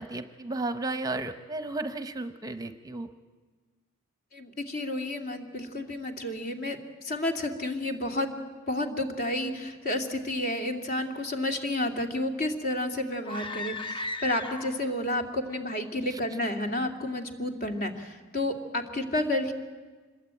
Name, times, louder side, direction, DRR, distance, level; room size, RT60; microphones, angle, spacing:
voice 1, 0.0-3.1 16.1-16.2, right 2 dB, 20° right, 9 dB, 0.8 m, -34 dB
voice 2, 4.3-8.4 8.7-19.5, left 1 dB, 45° left, 4 dB, 2.5 m, -31 dB
sound 1, 13.2-15.0, left 2 dB, 25° left, 1.0 m, -36 dB
26.0 x 21.0 x 9.0 m, 1.4 s
head